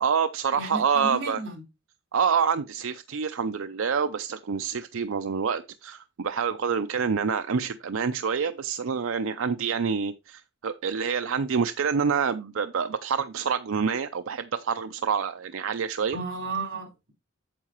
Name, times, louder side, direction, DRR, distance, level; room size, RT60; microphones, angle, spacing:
voice 1, 0.0-1.4 2.1-16.2, right 6 dB, 90° right, 0.5 m, -27 dB
voice 2, 0.5-1.6 16.1-17.1, right 3 dB, 65° right, 3.9 m, -33 dB
8.7 x 7.3 x 3.0 m
head